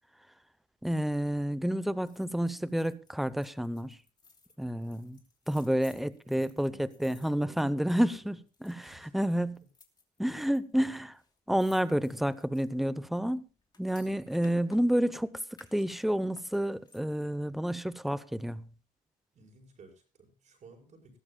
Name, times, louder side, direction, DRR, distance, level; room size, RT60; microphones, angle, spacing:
voice 1, 0.8-4.0 4.6-5.2 5.5-9.7 10.2-11.2 11.5-13.5 13.8-18.7, equal, ahead, 0.7 m, -30 dB
sound 1, 2.0-8.2 8.5-9.0 9.5-10.6 10.8-10.9 11.1-15.1 15.5-17.3 17.7-17.8, left 3 dB, 25° left, 2.8 m, -60 dB
voice 2, 6.2-8.3 8.8-9.1 19.3-21.2, right 4 dB, 45° right, 5.5 m, -55 dB
20.0 x 14.0 x 2.3 m
cardioid pair, 110°, 17 cm